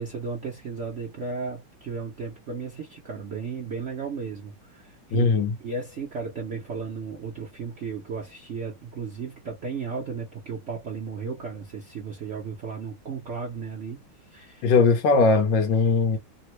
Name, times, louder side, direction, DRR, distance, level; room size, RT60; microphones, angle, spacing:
voice 1, 0.0-14.7, right 5 dB, 75° right, 0.6 m, -35 dB
voice 2, 5.1-5.5 14.6-16.2, left 4 dB, 70° left, 1.3 m, -20 dB
3.5 x 2.1 x 3.0 m
omnidirectional pair, 2.3 m